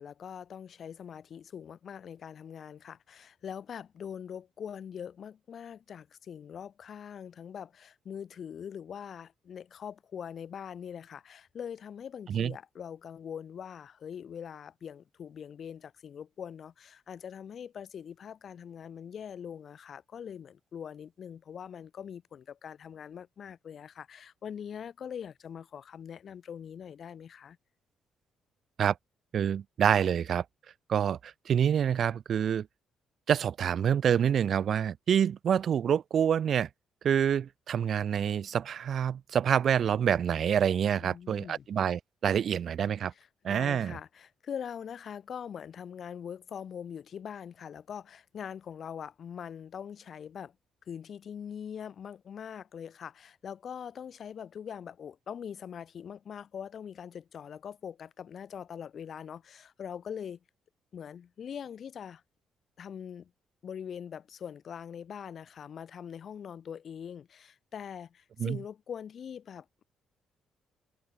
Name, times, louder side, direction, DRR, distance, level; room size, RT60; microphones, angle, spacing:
voice 1, 0.0-27.6 41.0-41.6 43.1-50.5 50.9-60.4 60.9-62.2 62.8-63.3 63.6-69.8, left 8 dB, 55° left, 1.8 m, -43 dB
voice 2, 29.3-30.4 30.9-32.7 33.3-36.7 37.0-43.1 43.4-44.0 68.4-68.6, right 8 dB, 60° right, 0.6 m, -27 dB
cardioid pair, 90°, 0 cm